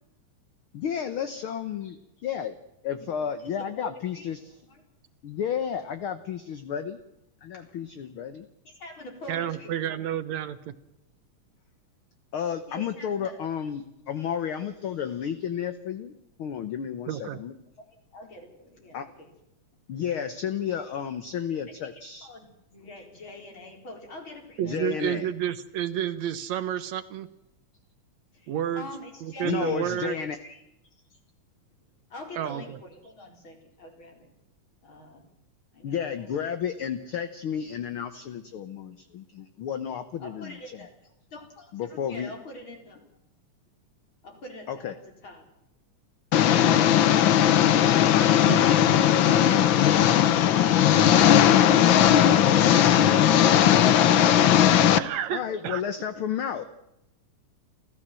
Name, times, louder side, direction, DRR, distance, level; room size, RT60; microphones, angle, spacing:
voice 1, 0.7-2.6 2.8-4.6 5.2-7.0 7.4-8.5 12.3-17.5 18.9-19.1 19.9-22.3 24.6-25.3 29.4-30.3 35.8-40.9 41.7-42.3 44.7-44.9 46.8-47.0 55.3-56.7, left 8 dB, 60° left, 10 dB, 1.5 m, -32 dB
voice 2, 3.4-4.3 4.7-4.8 8.8-9.9 12.7-13.3 18.1-19.3 22.2-25.0 28.3-30.6 31.1-31.2 32.1-34.3 34.8-35.2 35.7-36.4 40.2-43.2 44.2-44.9 45.2-45.4 55.7-55.8, left 1 dB, 40° left, 3 dB, 5.0 m, -45 dB
voice 3, 9.3-10.7 17.1-17.4 24.6-27.3 28.5-28.9 29.2-30.2 32.4-32.8 48.5-48.6 55.0-55.8, right 10 dB, 70° right, 12 dB, 2.1 m, -30 dB
Engine, 46.3-55.0, left 10 dB, 85° left, 1.0 m, -18 dB
29.5 x 14.5 x 7.6 m, 0.88 s
omnidirectional pair, 3.5 m